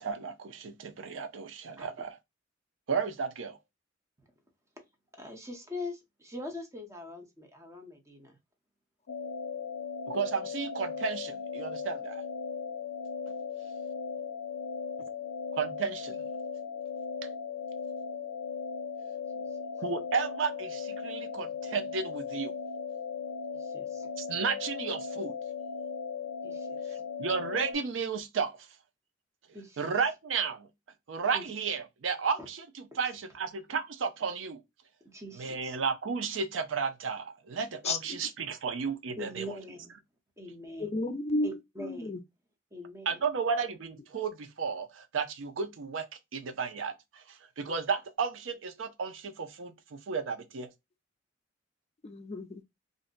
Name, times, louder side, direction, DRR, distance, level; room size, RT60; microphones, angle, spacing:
voice 1, 0.0-2.1 2.9-3.6 10.1-12.2 15.5-16.2 19.8-22.5 24.2-25.4 26.9-28.7 29.8-30.7 31.1-34.6 35.3-39.5 43.1-46.1 46.3-50.7, right 5 dB, 90° right, 0.5 m, -33 dB
voice 2, 5.2-8.4 23.6-24.1 26.4-27.0 29.5-29.8 31.3-31.5 35.1-35.8 39.2-39.9 40.4-40.9 41.4-42.2 42.7-43.2, left 1 dB, 15° right, 0.8 m, -42 dB
sound 1, 9.1-27.7, left 6 dB, 85° left, 0.5 m, -37 dB
voice 3, 37.8-38.2 40.8-42.2 52.0-52.6, left 2 dB, 35° left, 0.4 m, -33 dB
2.5 x 2.1 x 3.7 m
head